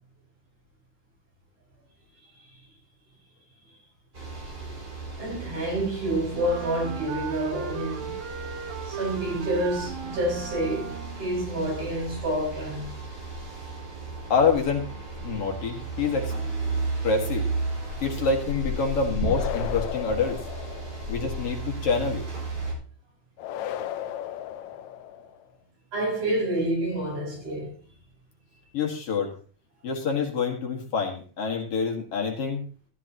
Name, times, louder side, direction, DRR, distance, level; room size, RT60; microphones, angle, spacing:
sound 1, 4.1-22.7, right 2 dB, 25° right, 5.1 m, -34 dB
voice 1, 5.2-8.2 8.9-13.0 21.1-21.2 25.9-27.8, right 1 dB, 50° right, 7.2 m, -28 dB
Wind instrument woodwind instrument, 6.3-11.4, right 8 dB, 70° right, 2.2 m, -37 dB
voice 2, 14.3-16.3 17.0-17.5 18.0-20.4 21.1-22.2 28.7-29.3 29.8-32.6, left 5 dB, 50° left, 2.7 m, -26 dB
sound 2, 19.2-21.3 23.4-25.5, left 11 dB, 75° left, 1.8 m, -35 dB
14.0 x 13.5 x 3.0 m
omnidirectional pair, 3.7 m